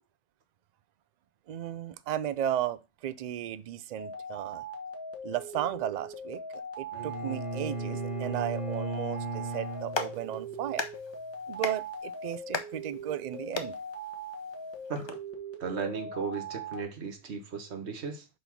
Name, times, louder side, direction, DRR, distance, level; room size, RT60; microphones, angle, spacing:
voice 1, 1.5-4.6 5.2-6.4 6.8-10.8 11.5-13.7, right 11 dB, 55° right, 0.5 m, -35 dB
sound 1, 4.0-16.8, right 2 dB, 15° left, 1.2 m, -41 dB
Bowed string instrument, 6.9-10.8, right 3 dB, 40° right, 1.9 m, -36 dB
Clapping, 9.6-15.1, left 4 dB, 30° left, 0.6 m, -39 dB
voice 2, 15.6-18.3, right 5 dB, 80° right, 1.3 m, -36 dB
5.1 x 4.0 x 5.9 m
omnidirectional pair, 1.1 m